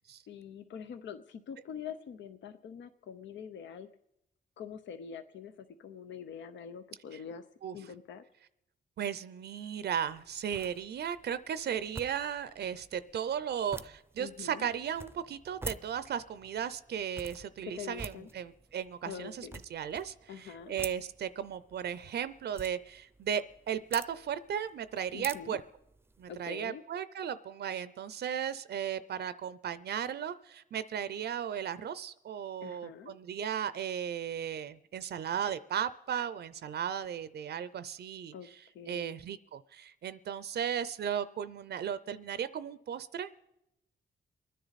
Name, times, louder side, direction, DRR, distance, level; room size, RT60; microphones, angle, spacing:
voice 1, 0.3-3.9 4.6-7.5 7.7-8.2 14.2-14.7 17.6-18.3 19.0-19.6 20.3-20.7 25.1-25.6 26.3-26.8 32.6-33.1 38.3-38.5 38.7-39.2, left 7 dB, 85° left, 9 dB, 0.7 m, -44 dB
voice 2, 9.0-25.6 26.2-38.3 38.9-43.3, right 8 dB, 65° right, 15 dB, 0.5 m, -36 dB
sound 1, 10.0-26.5, right 3 dB, 15° right, 0.5 m, -49 dB
29.5 x 10.0 x 4.1 m, 0.85 s
cardioid pair, 105°, 18 cm